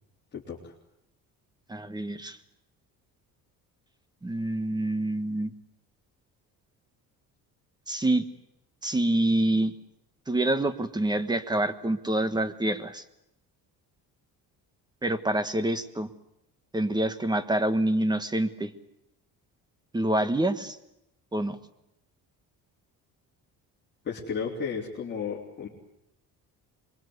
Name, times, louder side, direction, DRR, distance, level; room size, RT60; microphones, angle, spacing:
voice 1, 0.3-0.7 24.0-25.7, left 6 dB, 30° left, -5 dB, 3.7 m, -33 dB
voice 2, 1.7-2.4 4.2-5.5 7.9-8.2 8.8-9.7 10.3-13.0 15.0-16.1 16.7-18.7 19.9-20.8 21.3-21.6, right 1 dB, 10° right, 11 dB, 1.3 m, -26 dB
26.0 x 22.0 x 8.0 m, 0.83 s
cardioid pair, 145°, 36 cm